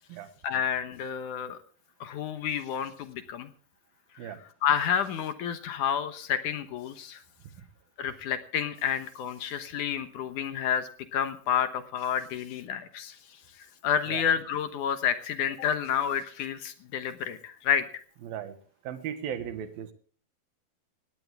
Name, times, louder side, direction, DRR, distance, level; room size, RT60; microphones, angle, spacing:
voice 1, 0.4-1.6 2.0-3.5 4.2-7.2 8.0-13.2 13.8-17.8, left 8 dB, 65° left, 10 dB, 2.4 m, -30 dB
voice 2, 18.2-18.6 18.9-19.9, right 9 dB, 80° right, 10 dB, 3.3 m, -36 dB
18.5 x 17.5 x 3.5 m, 0.43 s
omnidirectional pair, 4.2 m